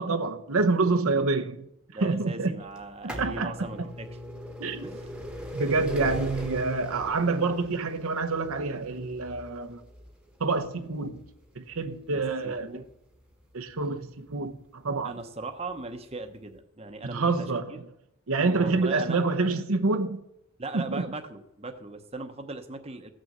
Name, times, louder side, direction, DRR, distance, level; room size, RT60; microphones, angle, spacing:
voice 1, 0.0-1.7 2.0-2.6 3.0-3.9 4.6-4.8 5.5-9.8 10.4-11.2 11.6-12.8 13.5-15.1 17.0-17.8 18.3-20.2 20.7-21.1, right 3 dB, 75° right, 0.8 m, -27 dB
voice 2, 1.9-4.1 4.8-5.1 12.4-12.8 15.0-17.5 18.5-19.2 20.6-23.1, right 2 dB, 25° right, 0.9 m, -38 dB
sound 1, 2.8-14.4 15.2-15.3 16.3-16.4 16.6-16.7, equal, 5° right, 1.2 m, -40 dB
15.0 x 6.5 x 7.4 m
head